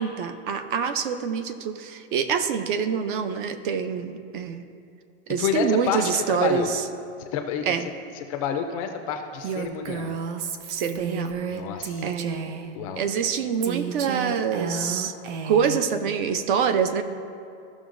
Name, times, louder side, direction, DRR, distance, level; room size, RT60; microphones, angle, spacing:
voice 1, 0.0-4.6 5.3-6.7 7.7-7.8 10.7-11.4 12.0-12.5 13.0-15.1 15.4-17.0, right 7 dB, 50° right, 10 dB, 0.6 m, -25 dB
voice 2, 5.4-6.7 7.3-10.1 11.5-12.1 12.7-13.0, left 7 dB, 30° left, 5 dB, 0.4 m, -29 dB
Female speech woman speaking, 9.4-12.7 13.6-15.9, right 6 dB, 85° right, 0.8 m, -32 dB
15.0 x 6.1 x 2.5 m, 2.5 s
supercardioid pair, 170°, 34 cm